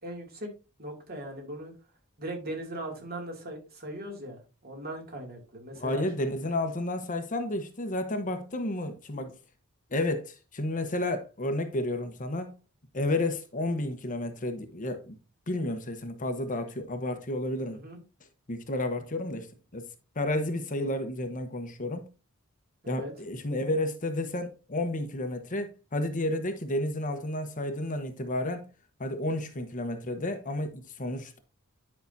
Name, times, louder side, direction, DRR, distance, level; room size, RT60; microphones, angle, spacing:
voice 1, 0.0-0.5 0.8-1.7 2.2-6.0 17.7-18.0 22.8-23.1, right 1 dB, 45° right, 2.6 m, -39 dB
voice 2, 5.7-9.4 9.9-12.5 12.9-15.2 15.5-17.8 18.5-19.9 20.1-22.1 22.9-28.7 29.0-31.4, left 1 dB, 35° left, 1.0 m, -31 dB
10.5 x 5.8 x 2.7 m
head